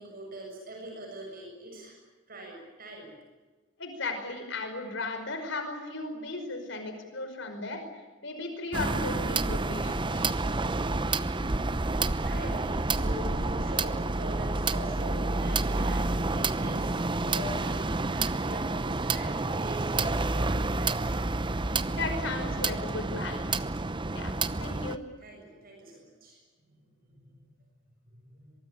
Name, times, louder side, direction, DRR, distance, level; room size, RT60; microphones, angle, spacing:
voice 1, 0.0-2.0 2.3-3.1 12.2-21.0 25.2-26.4 27.1-27.3 28.1-28.5, right 1 dB, 45° right, 0 dB, 7.2 m, -43 dB
voice 2, 3.8-7.8 8.2-10.3 22.0-23.7 24.1-24.3 24.6-25.0, left 3 dB, 65° left, 6 dB, 5.3 m, -36 dB
sound 1, 8.7-25.0, right 3 dB, 25° right, 0.8 m, -29 dB
23.5 x 23.5 x 8.8 m, 1.3 s
head